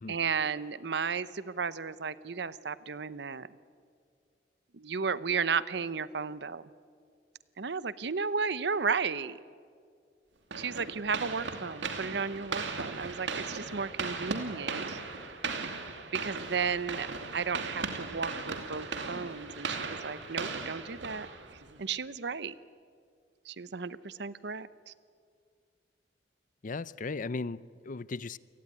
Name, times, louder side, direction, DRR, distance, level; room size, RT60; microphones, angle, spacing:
voice 1, 0.1-3.5 4.7-6.6 7.6-9.4 10.6-15.0 16.1-21.3 21.8-22.5 23.5-24.9, right 5 dB, 65° right, 0.8 m, -34 dB
sound 1, 10.5-21.8, right 4 dB, 85° right, 2.6 m, -37 dB
voice 2, 26.6-28.4, left 3 dB, 45° left, 0.6 m, -37 dB
28.5 x 18.0 x 10.0 m
head